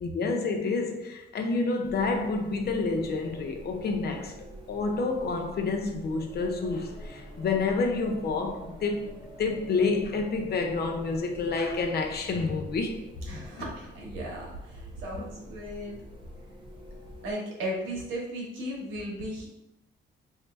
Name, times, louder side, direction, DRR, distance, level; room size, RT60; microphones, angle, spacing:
voice 1, 0.0-4.3 4.7-13.0 13.5-13.7 15.2-15.3, left 3 dB, 55° left, 0.6 m, -29 dB
sound 1, 1.8-17.3, equal, 25° right, 0.9 m, -46 dB
voice 2, 13.3-16.0 17.2-19.5, equal, 90° right, 1.1 m, -36 dB
3.3 x 2.8 x 3.2 m
cardioid pair, 90°, 20 cm